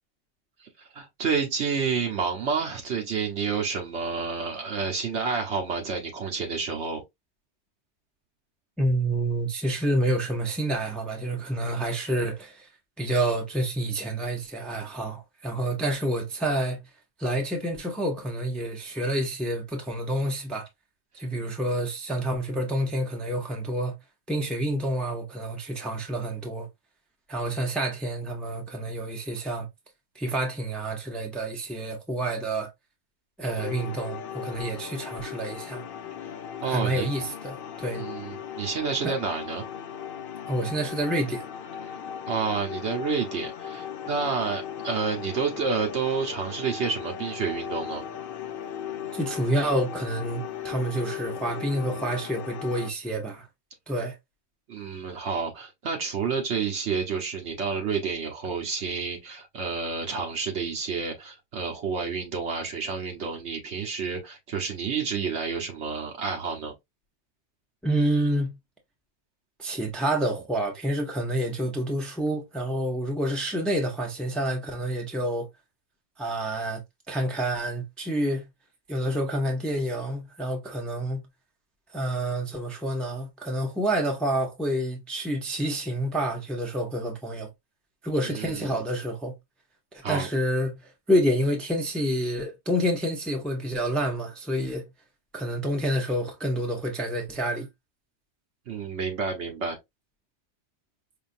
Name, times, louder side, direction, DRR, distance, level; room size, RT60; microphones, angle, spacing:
voice 1, 0.9-7.0 36.6-37.1 37.9-39.7 42.3-48.0 54.7-66.7 88.2-88.7 90.0-90.3 98.7-99.8, right 5 dB, 80° right, 1.2 m, -29 dB
voice 2, 8.8-12.7 13.0-16.8 17.2-20.7 21.1-23.9 24.3-26.7 27.3-29.7 30.1-32.7 33.4-35.8 36.6-38.0 39.0-39.1 40.5-41.4 49.1-53.5 53.9-54.1 67.8-68.6 69.6-75.5 76.2-76.8 77.1-78.5 78.9-81.2 81.9-87.5 88.0-89.3 89.9-90.8 91.1-94.9 95.3-97.7, right 1 dB, ahead, 0.7 m, -28 dB
sound 1, 33.6-52.9, left 9 dB, 60° left, 0.7 m, -37 dB
5.0 x 2.6 x 2.5 m
omnidirectional pair, 1.1 m